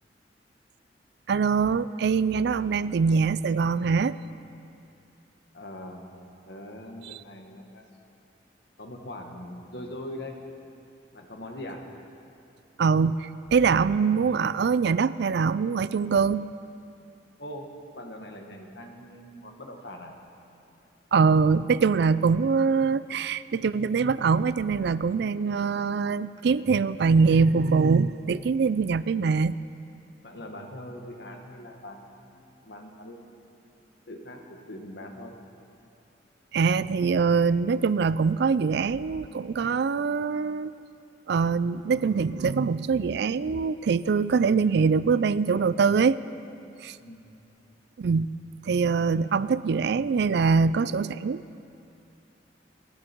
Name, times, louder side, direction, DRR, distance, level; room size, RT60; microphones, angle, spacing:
voice 1, 1.3-4.2 12.8-16.5 21.1-29.6 36.5-40.7 41.3-46.2 46.8-47.0 48.0-48.3 48.6-51.4, right 5 dB, 65° right, 16 dB, 0.4 m, -23 dB
voice 2, 5.5-6.1 6.5-8.1 8.8-10.4 11.1-11.9 17.4-20.1 30.2-33.3 34.1-35.4 47.0-47.2, left 1 dB, 65° left, 2 dB, 1.8 m, -42 dB
27.0 x 10.5 x 4.6 m, 2.6 s
head